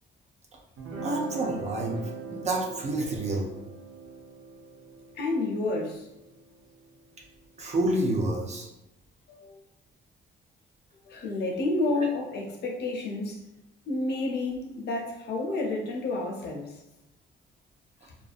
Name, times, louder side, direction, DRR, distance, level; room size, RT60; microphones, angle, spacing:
Guitar, 0.8-7.9, right 4 dB, 80° right, 0.6 m, -42 dB
voice 1, 1.0-2.0 2.3-3.5 7.6-8.7 12.0-12.1, right 2 dB, 35° right, -1 dB, 0.5 m, -28 dB
voice 2, 5.2-6.1 9.3-9.6 11.0-13.4 13.9-16.8 18.0-18.1, left 2 dB, 55° left, -1 dB, 0.6 m, -30 dB
2.4 x 2.1 x 2.4 m, 0.90 s
cardioid pair, 90°, 20 cm